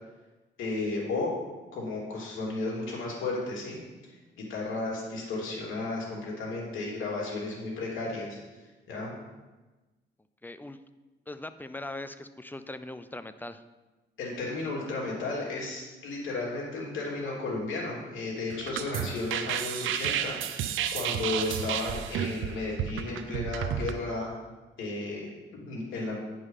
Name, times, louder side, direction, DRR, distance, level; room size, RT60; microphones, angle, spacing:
voice 1, 0.6-1.3 1.7-3.8 4.4-8.4 8.9-9.1 14.2-24.3 24.8-26.2, left 2 dB, 80° left, -3 dB, 3.1 m, -34 dB
voice 2, 10.4-10.8 11.3-13.6, left 2 dB, 10° left, 12 dB, 0.5 m, -40 dB
sound 1, 18.5-23.9, right 9 dB, 85° right, 0.5 m, -32 dB
9.5 x 5.4 x 5.5 m, 1.2 s
cardioid pair, 90°, 20 cm